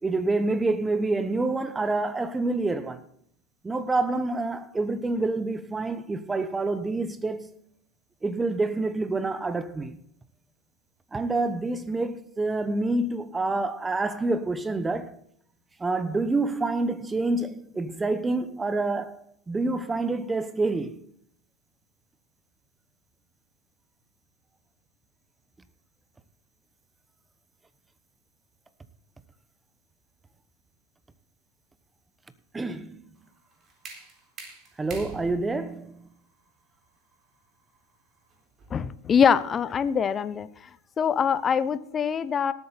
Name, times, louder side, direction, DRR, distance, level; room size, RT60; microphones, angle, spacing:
voice 1, 0.0-3.0 3.6-7.5 8.2-10.0 11.1-15.2 15.8-19.2 19.5-21.0 32.5-33.0 34.8-36.1, right 2 dB, 15° right, 1.1 m, -27 dB
sound 1, 33.2-38.9, right 4 dB, 35° right, 3.9 m, -47 dB
voice 2, 38.7-40.5 41.0-42.5, left 7 dB, 30° left, 0.8 m, -23 dB
18.5 x 8.7 x 4.2 m
hypercardioid pair, 95°, 0 cm